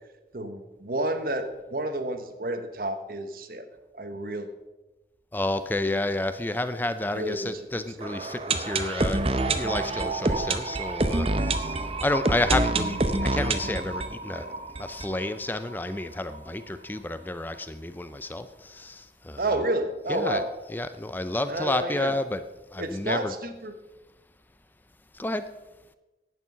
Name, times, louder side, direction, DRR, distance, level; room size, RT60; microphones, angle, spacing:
voice 1, 0.3-3.7 3.9-4.5 7.1-7.6 14.4-14.5 19.4-20.5 21.5-22.2 22.8-23.7, right 1 dB, 55° right, 8 dB, 1.1 m, -30 dB
voice 2, 5.3-9.2 9.5-14.5 14.8-19.6 20.1-22.4 22.7-23.3 25.1-25.4, left 1 dB, 10° left, 11 dB, 0.4 m, -30 dB
sound 1, 8.0-15.8 16.0-16.1 16.3-16.4 17.0-17.1, right 2 dB, 35° right, 0.7 m, -27 dB
11.0 x 8.9 x 5.7 m, 1.1 s
head